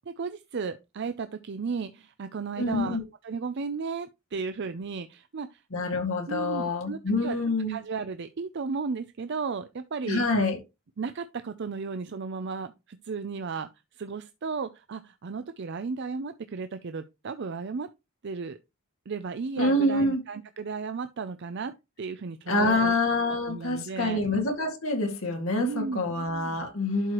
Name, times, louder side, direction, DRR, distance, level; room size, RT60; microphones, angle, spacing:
voice 1, 0.1-3.0 3.2-5.6 6.3-7.4 7.7-10.2 11.0-17.9 18.2-18.6 19.1-22.9 23.2-24.2 25.6-26.1, right 5 dB, 55° right, 0.5 m, -34 dB
voice 2, 2.5-3.0 5.7-7.8 10.1-10.6 19.6-20.2 22.5-27.1, left 2 dB, 85° left, 2.1 m, -26 dB
11.5 x 4.7 x 3.0 m
head